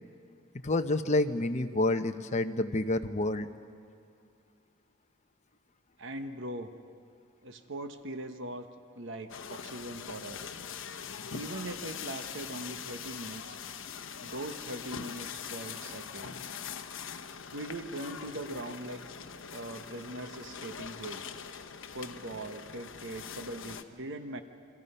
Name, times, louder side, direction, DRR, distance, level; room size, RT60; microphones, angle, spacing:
voice 1, 0.6-3.5, left 2 dB, 35° left, 7 dB, 0.9 m, -28 dB
voice 2, 6.0-6.7 7.4-8.7 8.9-10.5 11.3-13.6 14.2-16.4 17.5-19.0 19.5-21.2 21.9-24.4, right 1 dB, 60° right, 8 dB, 1.1 m, -41 dB
sound 1, 9.3-23.8, left 7 dB, 65° left, 1.0 m, -42 dB
29.0 x 25.0 x 5.6 m, 2.4 s
head